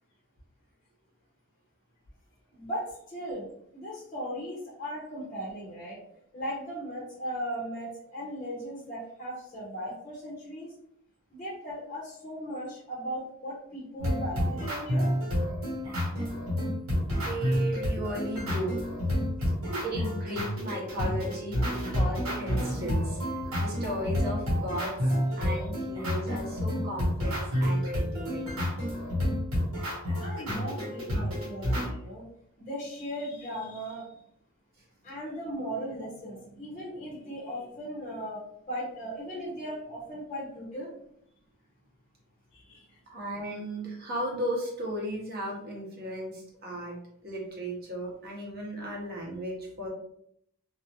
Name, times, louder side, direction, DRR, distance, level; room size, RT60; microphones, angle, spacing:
voice 1, 2.5-3.5 3.7-6.0 6.3-10.7 11.3-15.1 19.2-19.3 25.5-25.7 30.2-32.3 32.6-34.2 35.0-40.9 42.5-43.0, equal, 30° left, -6 dB, 0.6 m, -38 dB
sound 1, 14.0-31.9, equal, 70° right, 1.1 m, -29 dB
voice 2, 16.9-18.8 19.4-21.6 21.9-28.7 43.1-47.0 47.2-49.9, right 1 dB, 45° right, -3 dB, 0.8 m, -36 dB
2.4 x 2.0 x 2.8 m, 0.71 s
head